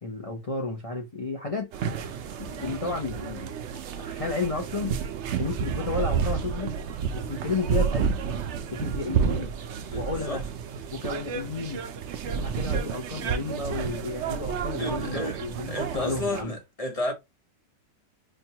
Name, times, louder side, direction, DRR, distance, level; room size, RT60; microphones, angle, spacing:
voice 1, 0.0-1.7 2.4-3.5 3.9-4.9 5.4-6.7 7.1-8.2 8.7-9.5 9.9-10.4 10.9-11.9 12.2-16.5, left 3 dB, 55° left, 0.3 m, -32 dB
sound 1, 1.7-16.4, right 7 dB, 85° right, 0.6 m, -30 dB
voice 2, 9.9-10.4 14.8-15.4 15.7-17.1, left 1 dB, 30° left, 0.8 m, -32 dB
5.1 x 2.3 x 2.8 m
omnidirectional pair, 1.9 m